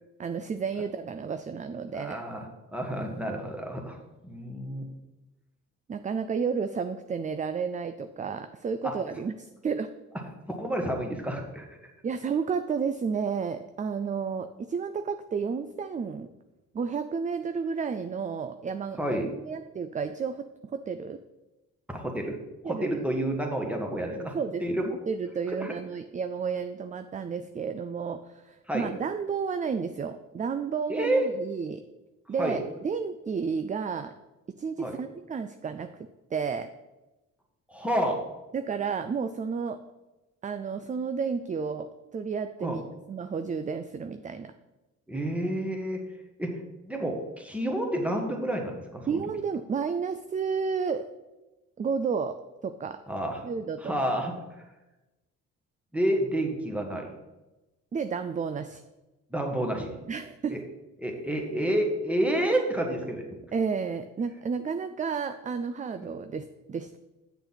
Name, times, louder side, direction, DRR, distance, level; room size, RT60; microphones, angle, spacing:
voice 1, 0.2-2.2 5.9-9.9 12.0-16.3 16.7-21.2 22.6-22.9 24.1-31.8 32.3-34.1 34.6-35.9 36.3-36.7 38.5-39.8 40.4-42.8 43.1-44.5 49.1-51.1 51.8-52.4 52.6-53.0 53.4-53.9 57.9-58.8 60.1-60.5 63.5-67.0, right 5 dB, 25° right, 9 dB, 0.4 m, -31 dB
voice 2, 1.9-4.0 4.2-4.9 8.8-8.9 10.5-11.7 19.0-19.3 21.9-22.4 22.6-24.4 24.6-24.8 25.6-25.7 28.7-28.9 30.9-31.3 32.4-32.6 34.8-35.0 37.7-38.2 42.6-42.8 45.1-46.0 46.4-49.2 53.1-53.5 53.8-54.3 55.9-57.1 59.3-59.9 60.5-60.6 61.0-63.3, right 1 dB, 5° right, 1 dB, 1.6 m, -29 dB
8.2 x 6.6 x 4.0 m, 1.0 s
cardioid pair, 90°, 30 cm